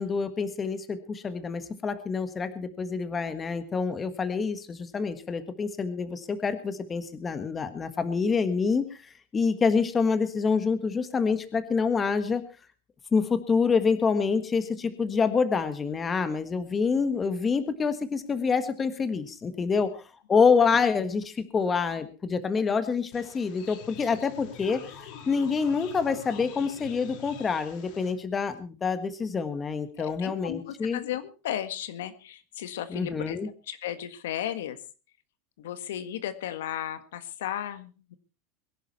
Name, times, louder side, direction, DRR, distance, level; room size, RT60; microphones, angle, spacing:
voice 1, 0.0-9.0 9.3-12.4 13.1-19.9 20.3-24.8 25.3-31.0 32.9-33.5, left 5 dB, 15° left, 11 dB, 1.5 m, -27 dB
sound 1, 23.1-28.1, left 7 dB, 55° left, 4.1 m, -45 dB
voice 2, 30.0-33.4 33.6-34.8 35.6-38.1, left 11 dB, 90° left, 11 dB, 1.7 m, -35 dB
22.5 x 11.5 x 4.3 m, 0.34 s
supercardioid pair, 155°, 0 cm